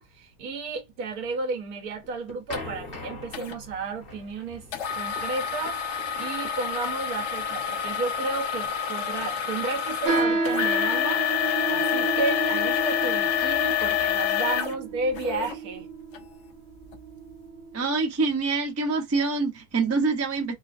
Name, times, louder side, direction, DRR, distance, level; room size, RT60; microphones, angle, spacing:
voice 1, 0.0-4.7 4.9-5.8 6.2-11.4 11.7-15.9, right 3 dB, 75° right, 1.3 m, -33 dB
sound 1, 1.8-8.7, left 2 dB, 40° left, 1.1 m, -44 dB
sound 2, 2.5-2.6 3.3-3.6 4.7-15.6 16.1-16.2 16.8-17.0, left 10 dB, 60° left, 0.8 m, -27 dB
sound 3, 10.0-17.8, right 3 dB, 50° right, 0.8 m, -30 dB
voice 2, 17.7-20.5, right 4 dB, 25° right, 0.3 m, -25 dB
3.7 x 2.4 x 2.4 m
omnidirectional pair, 1.6 m